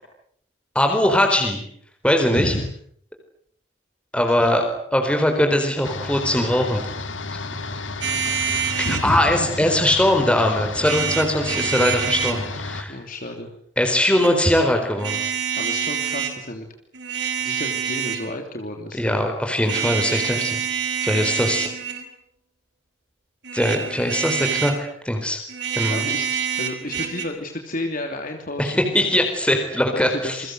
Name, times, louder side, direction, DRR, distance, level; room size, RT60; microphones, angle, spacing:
voice 1, 0.7-1.6 2.0-2.5 4.1-4.6 4.9-6.8 8.8-12.9 13.8-15.2 19.0-20.6 21.0-21.7 23.5-25.4 25.8-26.0 28.6-30.4, left 1 dB, 5° left, 4 dB, 4.3 m, -21 dB
voice 2, 2.3-2.7 4.3-4.6 8.8-9.6 12.9-13.5 15.6-16.7 17.4-19.2 25.9-26.3 26.6-28.9 29.9-30.5, left 1 dB, 45° left, 4 dB, 3.1 m, -31 dB
sound 1, 5.8-12.8, left 3 dB, 75° left, 2.6 m, -32 dB
sound 2, 8.0-9.1 10.8-12.4 13.9-14.3 15.0-16.4 16.9-18.3 19.6-22.1 23.4-24.8 25.5-27.2, right 7 dB, 60° right, 5.2 m, -26 dB
28.5 x 23.5 x 8.0 m, 0.65 s
head